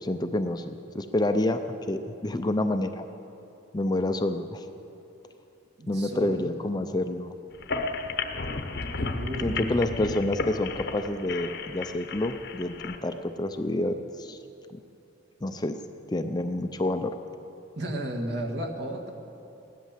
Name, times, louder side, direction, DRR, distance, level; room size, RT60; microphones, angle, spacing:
voice 1, 0.0-1.6 1.9-3.0 3.7-4.6 5.9-7.4 9.4-14.4 15.4-15.8 16.1-17.1, left 1 dB, 20° left, 8 dB, 0.5 m, -28 dB
voice 2, 5.8-6.5 9.0-9.9 17.7-19.1, right 1 dB, 55° right, 1 dB, 1.8 m, -33 dB
sound 1, 7.5-13.0, left 3 dB, 55° left, 0.9 m, -33 dB
16.5 x 11.5 x 7.4 m, 2.8 s
head